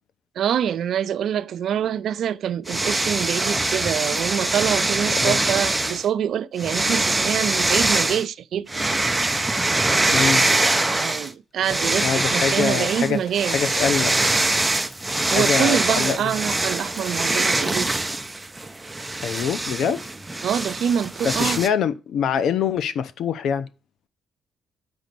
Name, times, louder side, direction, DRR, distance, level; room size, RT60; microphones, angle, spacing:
voice 1, 0.4-8.7 11.0-13.8 15.3-17.9 20.4-21.6, right 9 dB, 65° right, 0.5 m, -25 dB
sound 1, 2.7-6.0 6.6-8.2 8.7-11.3 11.6-21.7, right 2 dB, 15° right, 0.7 m, -23 dB
Breathing, 9.2-11.2 11.7-15.9 16.2-16.3, equal, 5° left, 1.2 m, -45 dB
voice 2, 10.1-10.4 12.0-13.2 13.4-14.1 15.3-16.2 19.2-20.0 21.2-23.7, left 7 dB, 70° left, 0.8 m, -24 dB
6.2 x 5.2 x 6.8 m
cardioid pair, 90°, 0 cm